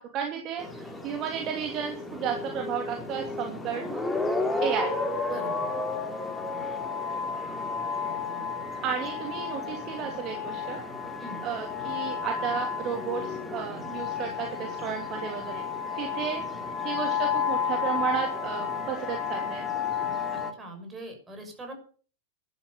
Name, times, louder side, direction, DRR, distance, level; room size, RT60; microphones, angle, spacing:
voice 1, 0.0-4.1 4.6-4.9 8.8-10.8 11.4-15.7 16.0-19.6, right 8 dB, 35° right, 2 dB, 2.7 m, -33 dB
sound 1, 0.6-20.5, left 5 dB, 10° left, 2.5 m, -32 dB
voice 2, 5.3-5.6 11.2-11.4 20.3-21.7, right 1 dB, 15° right, 4 dB, 6.3 m, -42 dB
12.0 x 12.0 x 6.8 m, 0.42 s
figure-of-eight pair, 90°, 0 cm